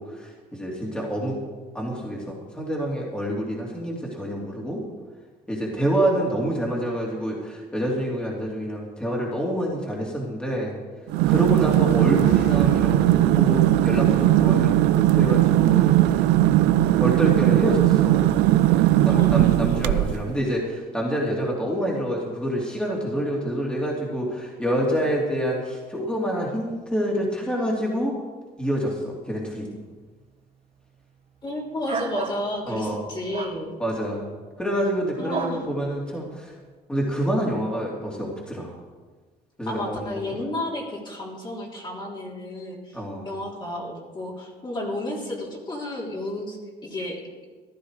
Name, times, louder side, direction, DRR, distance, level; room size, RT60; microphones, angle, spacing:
voice 1, 0.0-1.4 1.7-4.8 5.5-10.7 11.3-16.2 17.0-18.3 19.0-28.1 28.6-29.8 32.7-33.0 33.8-34.3 34.6-36.5 36.9-38.7 39.6-40.4 42.9-43.3, equal, 5° left, -3 dB, 3.1 m, -27 dB
sound 1, 11.1-15.3, left 1 dB, 65° left, 4.3 m, -38 dB
sound 2, 11.1-20.3, right 14 dB, 90° right, 0.5 m, -18 dB
voice 2, 19.1-19.4 31.4-33.8 35.2-35.6 39.7-46.6 46.8-47.2, left 1 dB, 25° left, -3 dB, 3.3 m, -32 dB
sound 3, 31.9-32.4 33.3-33.6 35.3-35.6, right 5 dB, 35° right, 1.3 m, -30 dB
15.0 x 11.5 x 5.0 m, 1.4 s
cardioid pair, 110°, 17 cm